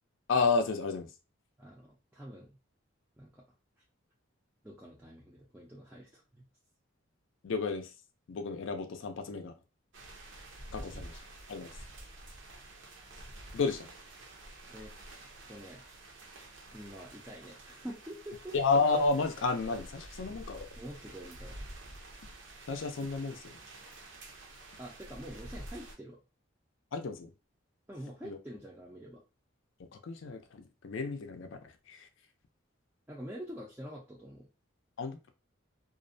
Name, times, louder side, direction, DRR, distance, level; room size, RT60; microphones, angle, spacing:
voice 1, 0.3-1.1 7.4-7.9 8.3-9.5 10.7-11.1 11.5-11.7 13.5-13.9 18.5-20.7 22.7-23.6 26.9-27.3 28.2-28.4 29.9-31.6 31.9-32.0 35.0-35.2, left 4 dB, 70° left, 0.4 m, -31 dB
voice 2, 1.6-2.6 3.2-3.4 4.6-6.4 10.8-10.9 14.7-14.9 15.5-15.9 16.7-18.6 20.8-21.6 24.8-26.2 27.9-29.2 33.1-34.5, equal, 10° right, 0.4 m, -46 dB
sound 1, 9.9-26.0, right 1 dB, 65° right, 0.6 m, -49 dB
2.5 x 2.1 x 2.5 m
head